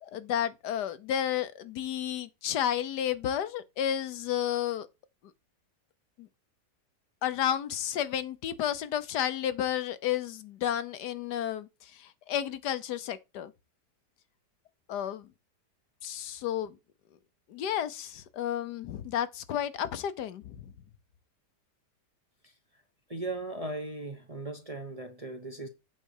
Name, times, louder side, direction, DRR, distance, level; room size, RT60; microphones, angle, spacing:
voice 1, 0.0-4.9 6.2-6.3 7.2-13.5 14.9-15.3 16.0-16.8 17.5-20.7, left 10 dB, 75° left, 1.3 m, -32 dB
voice 2, 23.1-25.7, right 2 dB, 25° right, 0.8 m, -37 dB
8.0 x 4.0 x 6.5 m
omnidirectional pair, 1.8 m